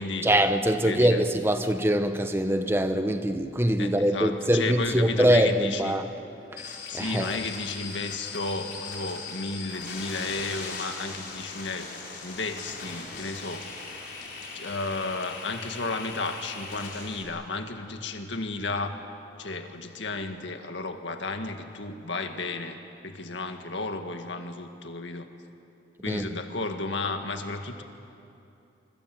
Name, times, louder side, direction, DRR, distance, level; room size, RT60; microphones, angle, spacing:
voice 1, 0.2-6.1 6.5-6.7 6.9-7.4 26.1-26.3, right 1 dB, 10° right, 8 dB, 0.9 m, -23 dB
voice 2, 0.8-1.2 3.8-6.0 6.9-11.9 12.2-13.6 14.5-19.0 19.4-22.8 23.0-25.3 26.0-27.8, left 3 dB, 75° left, 6 dB, 1.9 m, -33 dB
sound 1, 6.6-17.2, left 4 dB, 55° left, 4.7 m, -39 dB
26.0 x 24.5 x 7.8 m, 2.7 s
head